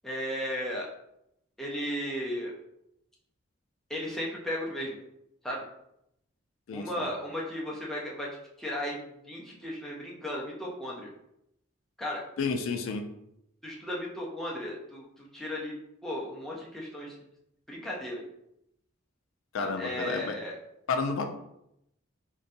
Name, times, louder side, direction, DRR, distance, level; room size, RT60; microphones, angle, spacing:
voice 1, 0.0-0.9 1.6-2.5 3.9-5.0 5.4-5.6 6.7-8.3 8.6-11.1 12.0-12.2 13.6-17.1 17.7-18.2 19.6-20.5, equal, ahead, -4 dB, 0.5 m, -35 dB
voice 2, 6.7-7.1 12.4-13.0 19.5-20.3 20.9-21.3, left 4 dB, 75° left, 5 dB, 0.4 m, -31 dB
4.0 x 2.2 x 2.5 m, 0.79 s
head